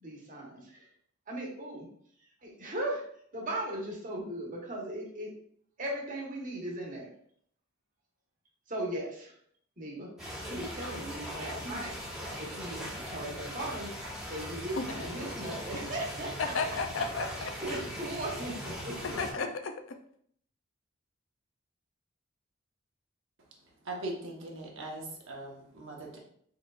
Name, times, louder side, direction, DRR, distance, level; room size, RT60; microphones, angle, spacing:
voice 1, 0.0-0.8 1.3-1.8 2.4-3.0 3.3-5.3 5.8-7.1 8.7-9.3 9.8-10.1 10.5-12.0 12.4-13.9 14.3-16.5 17.6-19.2, right 1 dB, 40° right, -2 dB, 1.2 m, -37 dB
sound 1, 10.2-19.3, equal, 5° right, 1.2 m, -40 dB
voice 2, 14.8-15.1 16.5-17.5 19.0-20.0, left 4 dB, 70° left, 6 dB, 0.5 m, -34 dB
voice 3, 23.8-26.2, right 2 dB, 70° right, -1 dB, 1.1 m, -40 dB
4.7 x 3.8 x 2.4 m, 0.65 s
head